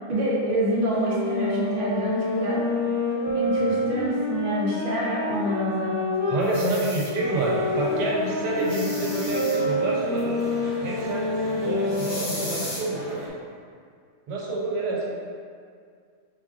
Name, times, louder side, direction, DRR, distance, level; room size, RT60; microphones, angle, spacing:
voice 1, 0.1-2.6 3.3-6.0, equal, 40° right, -7 dB, 0.8 m, -26 dB
sound 1, 0.9-6.4 7.0-12.3, left 2 dB, 70° left, 1.8 m, -28 dB
voice 2, 6.3-10.4 10.8-11.3 11.6-13.2 14.3-15.0, right 2 dB, 75° right, -4 dB, 1.3 m, -27 dB
sound 2, 6.4-7.1 8.6-9.6 11.9-12.8, left 1 dB, 85° left, 1.9 m, -36 dB
sound 3, 7.2-13.3, right 1 dB, 60° right, 1.4 m, -38 dB
4.3 x 3.5 x 2.4 m, 2.2 s
omnidirectional pair, 1.8 m